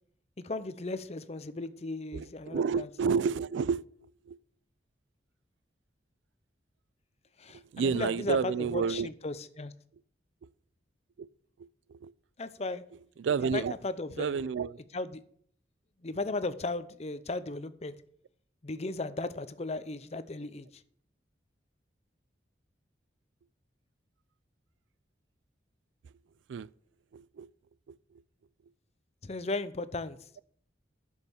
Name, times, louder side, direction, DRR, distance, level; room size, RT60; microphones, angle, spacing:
voice 1, 0.4-2.9 7.4-9.7 12.4-12.8 13.4-14.4 14.9-15.2 16.0-17.9 18.6-20.8 29.2-30.2, left 2 dB, 35° left, 0.6 m, -36 dB
voice 2, 2.1-3.8 4.3-4.4 7.7-9.1 10.4-10.5 11.2-11.3 11.9-12.1 13.2-13.7 14.2-14.8 26.5-26.7 27.1-27.5, right 6 dB, 85° right, 0.4 m, -30 dB
9.9 x 6.4 x 7.1 m
head